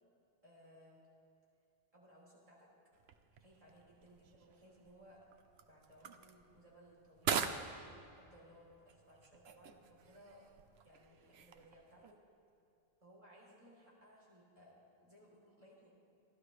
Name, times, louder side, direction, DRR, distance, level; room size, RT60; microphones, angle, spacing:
voice 1, 0.4-1.0 1.9-2.7 3.4-5.3 5.6-7.4 8.1-10.4 10.8-12.2 13.0-15.9, equal, 35° right, -4 dB, 3.6 m, -62 dB
sound 1, 2.9-12.1, right 7 dB, 90° right, 1.0 m, -45 dB
28.0 x 12.0 x 3.3 m, 2.6 s
omnidirectional pair, 1.0 m